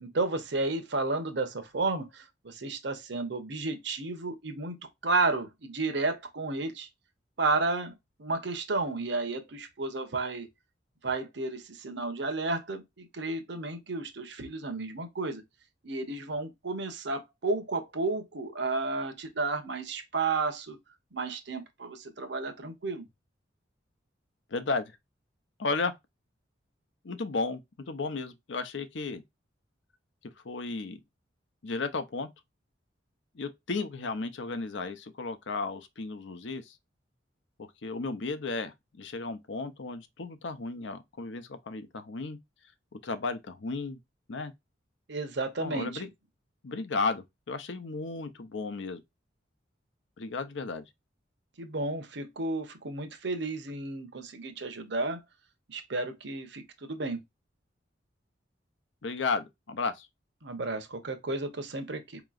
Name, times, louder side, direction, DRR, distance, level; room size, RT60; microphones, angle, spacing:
voice 1, 0.0-6.9 7.4-10.5 11.0-15.4 15.8-20.8 21.1-23.0 45.1-46.1 51.6-55.2 55.7-57.2 60.4-62.2, right 3 dB, 65° right, 0.9 m, -32 dB
voice 2, 24.5-24.9 25.6-25.9 27.0-29.2 30.4-31.0 31.6-32.3 33.3-36.7 37.6-42.4 42.9-44.0 44.3-44.5 45.6-46.1 46.6-49.0 50.2-50.8 59.0-60.1, left 3 dB, 70° left, 0.6 m, -34 dB
4.7 x 3.0 x 2.4 m
head